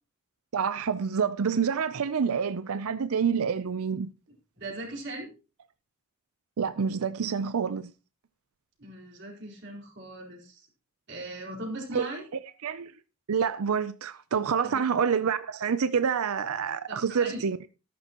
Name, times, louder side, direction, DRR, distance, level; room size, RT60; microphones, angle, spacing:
voice 1, 0.5-4.1 6.6-7.9 11.9-12.1 12.6-12.9 13.3-17.6, right 6 dB, 85° right, 0.5 m, -27 dB
voice 2, 4.6-5.4 8.8-10.7 11.1-12.3 14.6-14.8 16.9-17.4, right 1 dB, 50° right, 4.4 m, -39 dB
13.5 x 11.5 x 2.9 m
head